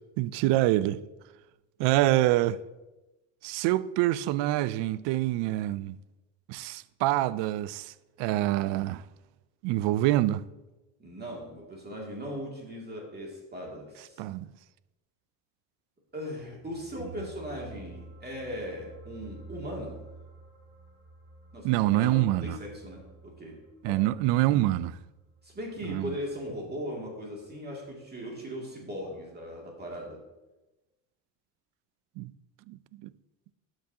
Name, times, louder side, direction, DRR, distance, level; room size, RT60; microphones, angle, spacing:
voice 1, 0.2-1.0 1.8-2.6 3.4-5.9 6.5-7.9 8.2-9.0 9.6-10.4 14.2-14.5 21.6-22.6 23.8-25.0 25.8-26.2 32.2-32.3 32.7-33.1, right 15 dB, 75° right, 0.5 m, -26 dB
voice 2, 11.0-14.2 16.1-20.0 21.5-23.6 23.8-24.0 25.4-30.2, equal, 20° right, 2.4 m, -39 dB
sound 1, 16.5-27.0 27.3-27.5, right 2 dB, 55° right, 2.5 m, -51 dB
12.5 x 6.2 x 2.8 m
cardioid pair, 100°, 43 cm